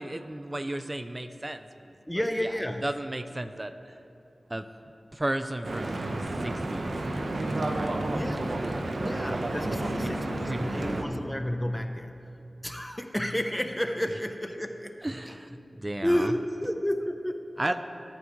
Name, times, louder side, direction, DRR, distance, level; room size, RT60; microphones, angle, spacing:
voice 1, 0.0-1.7 2.4-2.5 2.8-4.0 4.5-4.7 5.1-7.0 7.2-7.4 7.7-9.0 10.0-10.1 10.5-11.2 15.0-16.3 17.6-17.8, right 1 dB, 30° right, 9 dB, 0.5 m, -35 dB
voice 2, 2.1-2.9 8.1-8.6 9.0-12.1 12.6-15.0 15.3-15.4 16.0-17.4, equal, 10° left, 7 dB, 0.7 m, -31 dB
Stream / Boat Water vehicle, 5.6-11.0, right 2 dB, 75° right, 0.9 m, -31 dB
20.0 x 9.3 x 3.2 m, 2.8 s
cardioid pair, 50°, 0 cm